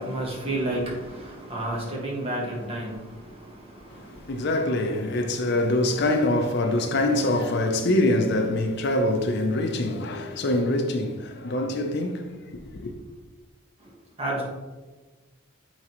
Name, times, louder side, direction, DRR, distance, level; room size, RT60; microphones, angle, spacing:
voice 1, 0.0-3.0 14.2-14.4, right 1 dB, 30° right, 1.4 m, -30 dB
voice 2, 4.3-12.9, left 1 dB, 55° left, 0.6 m, -24 dB
9.0 x 3.8 x 3.0 m
head